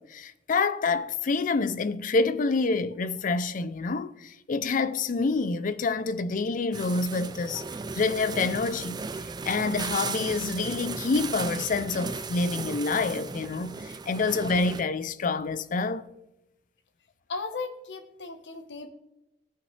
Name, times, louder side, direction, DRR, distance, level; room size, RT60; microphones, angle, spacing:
voice 1, 0.0-7.6 7.9-9.0 9.5-16.1, left 4 dB, 45° left, 0.4 m, -27 dB
threshing machine, 6.7-14.8, right 4 dB, 25° right, 0.4 m, -36 dB
voice 2, 17.3-18.9, left 4 dB, 75° left, 1.1 m, -36 dB
16.5 x 5.6 x 3.2 m
head